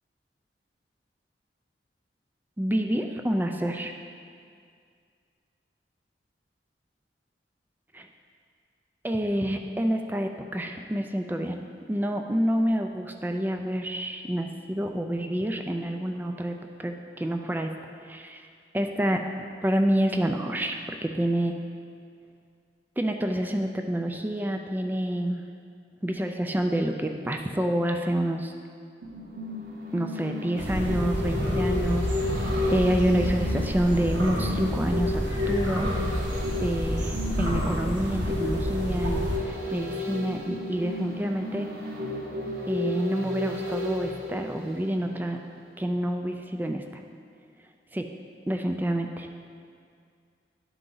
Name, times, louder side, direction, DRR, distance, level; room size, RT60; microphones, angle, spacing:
voice 1, 2.6-3.9 7.9-8.1 9.0-11.6 11.9-16.5 16.8-17.7 18.0-18.5 18.7-19.2 19.6-20.8 21.0-21.5 23.0-25.4 26.0-28.5 29.9-32.1 32.7-35.9 36.6-41.7 42.7-45.4 45.8-47.0 47.9-48.0 48.5-49.3, right 1 dB, 10° right, 4 dB, 0.3 m, -28 dB
sound 1, 29.0-45.3 45.6-45.7, left 1 dB, 55° right, 0.7 m, -33 dB
sound 2, 30.6-39.4, equal, 85° right, 1.1 m, -29 dB
10.5 x 3.9 x 3.8 m, 2.2 s
head